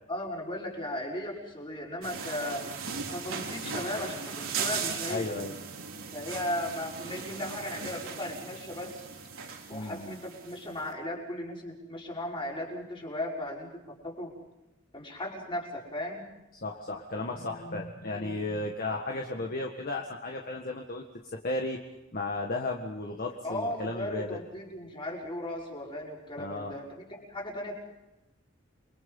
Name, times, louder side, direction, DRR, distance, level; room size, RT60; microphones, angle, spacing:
voice 1, 0.1-2.7 3.1-5.3 6.1-9.1 9.7-14.3 14.9-16.3 23.4-27.8, left 1 dB, 25° left, -2 dB, 5.6 m, -36 dB
sound 1, 2.0-10.8, right 5 dB, 80° right, 3.7 m, -38 dB
voice 2, 5.1-5.5 9.7-10.2 16.6-21.1 21.3-21.8 22.1-24.4 26.4-26.7, left 2 dB, 45° left, 1 dB, 1.8 m, -34 dB
29.0 x 23.0 x 5.6 m, 0.97 s
head